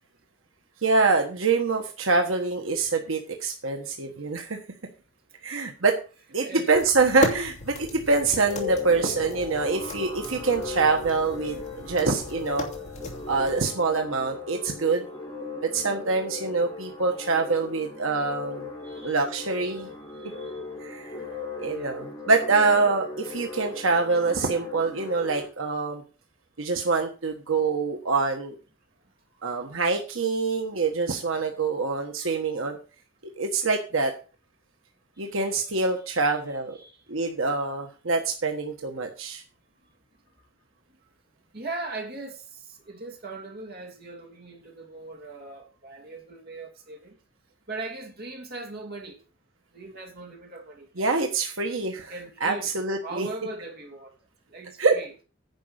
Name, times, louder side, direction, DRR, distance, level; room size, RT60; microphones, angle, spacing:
voice 1, 0.8-4.6 5.4-6.0 6.3-12.7 13.3-15.0 15.6-18.7 19.0-19.9 20.8-21.2 21.6-26.0 26.6-28.5 29.4-32.8 33.4-34.1 35.2-36.8 37.1-39.4 51.0-52.1 52.4-53.3 54.8-55.0, right 4 dB, 80° right, 1.4 m, -25 dB
sound 1, 6.7-13.7, left 2 dB, 35° left, 2.7 m, -36 dB
sound 2, 8.3-25.4, left 4 dB, 15° left, 4.3 m, -37 dB
voice 2, 18.8-19.1 20.1-20.6 21.7-22.0 32.2-32.3 35.2-36.2 36.7-37.0 41.5-47.1 47.7-49.2 49.7-51.0 51.9-54.2 54.5-55.1, right 3 dB, 50° right, 2.9 m, -40 dB
10.5 x 5.4 x 8.0 m
head